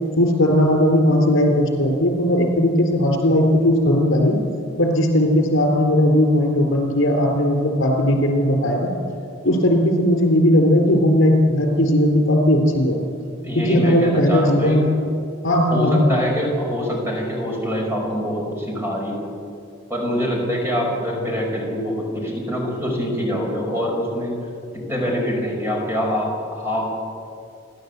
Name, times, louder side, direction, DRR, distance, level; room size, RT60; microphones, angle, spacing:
voice 1, 0.2-4.4 4.8-8.9 9.4-13.0 13.6-14.9 15.4-16.2, left 1 dB, 75° left, 3 dB, 3.7 m, -17 dB
voice 2, 13.4-14.8 15.7-19.2 19.9-24.3 24.7-26.8, equal, 15° right, -1 dB, 5.1 m, -24 dB
28.5 x 11.5 x 8.1 m, 2.4 s
head